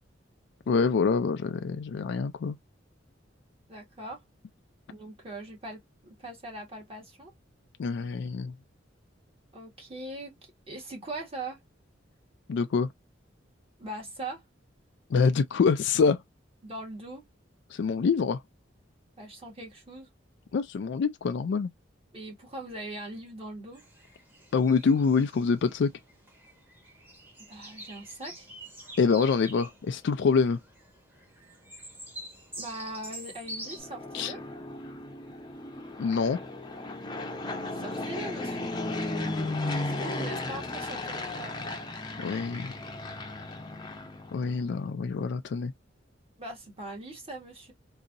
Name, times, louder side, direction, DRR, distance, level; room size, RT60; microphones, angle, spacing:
voice 1, 0.7-2.6 7.8-8.5 12.5-12.9 15.1-16.2 17.7-18.4 20.5-21.7 24.5-25.9 29.0-30.6 34.1-34.3 36.0-36.4 42.2-42.7 44.3-45.7, left 5 dB, 65° left, 0.4 m, -25 dB
voice 2, 3.7-4.2 4.9-7.3 9.5-10.3 10.7-11.6 13.8-14.4 16.6-17.2 19.2-20.1 22.1-23.8 27.5-28.5 32.6-34.4 37.5-38.7 39.8-41.5 46.4-47.7, right 1 dB, 30° right, 2.0 m, -41 dB
sound 1, 23.7-33.8, right 1 dB, 10° right, 1.3 m, -46 dB
Fixed-wing aircraft airplane, 33.6-44.7, left 2 dB, 25° left, 0.7 m, -35 dB
3.9 x 2.7 x 2.5 m
head